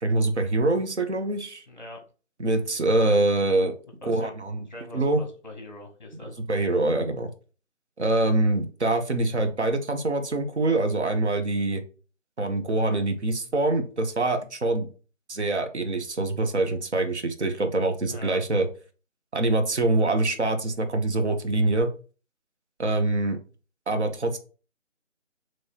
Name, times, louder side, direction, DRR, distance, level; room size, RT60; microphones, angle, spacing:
voice 1, 0.0-1.6 2.4-3.7 4.0-4.7 4.9-5.2 6.5-7.3 8.0-11.8 12.4-14.9 15.3-18.7 19.3-21.9 22.8-23.4 23.9-24.4, right 2 dB, 60° right, 6 dB, 0.9 m, -24 dB
voice 2, 1.7-2.0 4.0-4.4 4.7-6.3 18.1-18.4, left 1 dB, 35° left, 3 dB, 1.0 m, -42 dB
3.1 x 2.8 x 4.5 m, 0.37 s
figure-of-eight pair, 165°, 38 cm